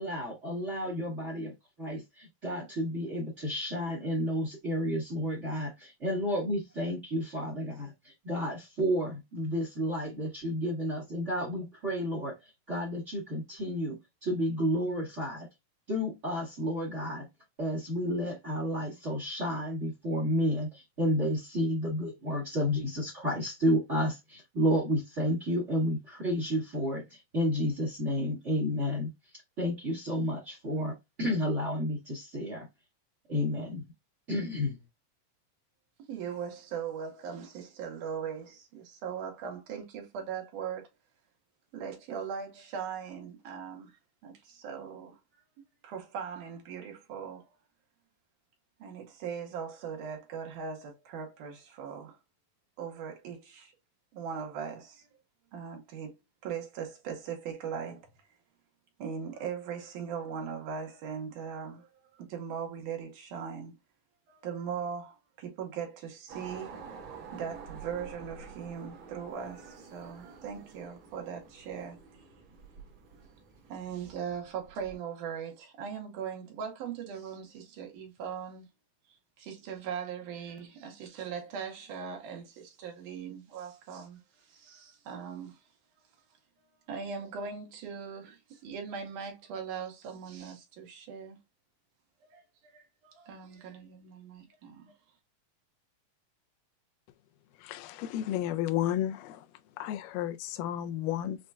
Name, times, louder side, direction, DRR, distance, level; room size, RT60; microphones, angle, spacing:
voice 1, 0.0-12.3 12.7-15.5 15.9-17.3 17.6-29.1 29.6-32.7 33.3-33.8 34.3-34.8, equal, 45° right, 0.9 m, -31 dB
voice 2, 36.1-40.9 41.7-44.0 44.2-45.2 45.8-47.5 48.8-52.2 52.8-53.7 54.1-55.1 55.5-56.2 56.4-58.0 59.0-61.9 62.1-63.7 64.3-66.7 67.3-72.0 73.7-78.7 79.1-85.6 86.9-91.4 92.3-94.9, right 7 dB, 75° right, 2.5 m, -39 dB
sound 1, 66.3-75.0, right 5 dB, 60° right, 1.3 m, -49 dB
voice 3, 97.6-99.5 99.8-101.4, left 12 dB, 85° left, 2.1 m, -32 dB
6.2 x 2.2 x 2.3 m
omnidirectional pair, 3.8 m